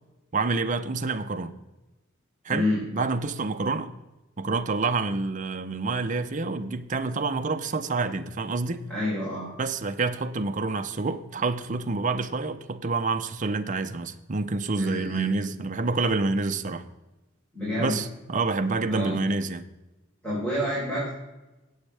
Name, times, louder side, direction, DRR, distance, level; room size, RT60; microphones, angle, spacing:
voice 1, 0.3-1.6 2.4-2.7 2.9-3.9 4.4-8.9 9.6-16.9 17.8-19.6, right 3 dB, 40° right, 0.7 m, -28 dB
voice 2, 2.5-2.8 8.9-9.5 14.8-15.3 17.5-18.0 18.9-19.2 20.2-21.1, left 1 dB, 5° left, 4.1 m, -28 dB
17.5 x 7.2 x 3.4 m
head